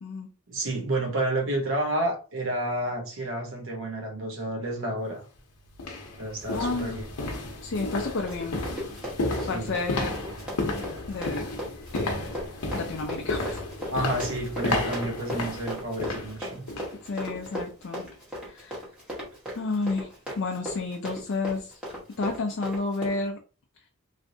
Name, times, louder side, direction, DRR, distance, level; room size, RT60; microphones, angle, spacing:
voice 1, 0.5-5.2 6.2-7.0 9.2-9.7 13.9-16.7, right 1 dB, 60° right, 0.9 m, -30 dB
sound 1, 5.0-5.1 5.7-17.0 17.3-17.6 18.0-18.1, left 2 dB, 85° left, 0.7 m, -32 dB
voice 2, 6.5-7.0 7.6-8.6 9.5-10.1 11.1-11.5 11.9-12.2 12.7-13.6 17.0-18.0 18.5-18.8 19.5-21.8 22.2-23.4, left 3 dB, 55° left, 0.4 m, -31 dB
Run, 8.0-23.2, equal, 5° right, 1.1 m, -37 dB
3.2 x 2.6 x 2.6 m
head